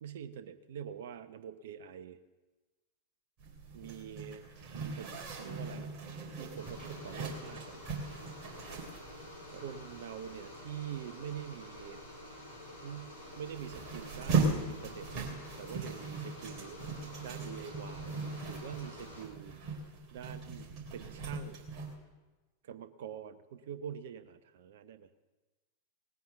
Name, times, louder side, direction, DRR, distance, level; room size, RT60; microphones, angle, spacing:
voice 1, 0.0-2.2 3.7-5.9 6.4-7.7 9.5-12.0 12.8-15.3 15.6-19.5 20.1-21.6 22.6-25.1, right 9 dB, 55° right, 12 dB, 0.8 m, -45 dB
Zipper (clothing), 3.4-21.9, right 4 dB, 35° right, 3.4 m, -39 dB
sound 1, 6.6-19.2, left 1 dB, 75° left, 3.9 m, -49 dB
19.0 x 9.4 x 6.7 m, 1.2 s
figure-of-eight pair, 90°, 0 cm